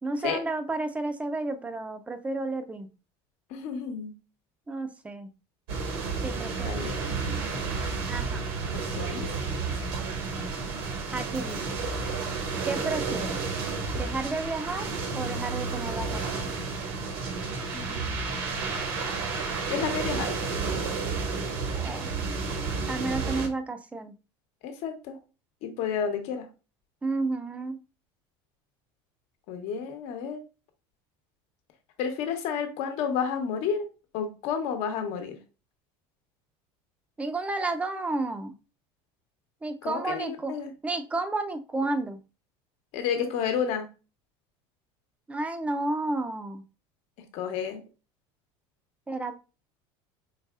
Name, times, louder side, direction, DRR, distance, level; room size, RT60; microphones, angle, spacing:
voice 1, 0.0-2.9 4.7-5.3 6.2-6.7 8.1-8.5 11.1-11.8 12.6-13.4 14.0-14.9 15.1-16.5 21.7-22.1 22.9-24.1 27.0-27.8 37.2-38.5 39.6-40.5 40.8-42.2 45.3-46.6 49.1-49.4, right 2 dB, 10° right, 8 dB, 0.5 m, -31 dB
voice 2, 3.5-4.1 6.6-7.0 8.7-9.3 17.7-18.1 19.7-20.3 24.6-25.2 25.6-26.5 29.5-30.4 32.0-33.9 34.1-35.4 39.8-40.7 42.9-43.9 47.3-47.8, left 7 dB, 60° left, 6 dB, 1.0 m, -31 dB
sound 1, 5.7-23.5, right 4 dB, 85° right, 1.3 m, -31 dB
4.4 x 4.0 x 2.4 m, 0.32 s
supercardioid pair, 135°, 13 cm